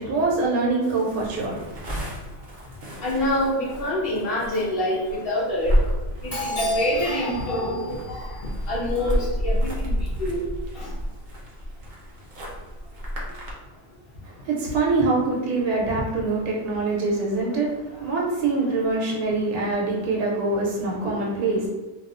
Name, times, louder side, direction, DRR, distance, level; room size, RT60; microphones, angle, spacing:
voice 1, 0.0-1.7 14.2-17.7 18.0-21.7, right 3 dB, 90° right, -3 dB, 1.1 m, -24 dB
sound 1, 0.8-13.5, equal, 65° right, 0.4 m, -30 dB
voice 2, 3.0-5.8 6.2-10.5 10.7-10.9 17.5-17.6, left 1 dB, 90° left, -6 dB, 0.5 m, -26 dB
2.5 x 2.3 x 2.4 m, 1.2 s
omnidirectional pair, 1.6 m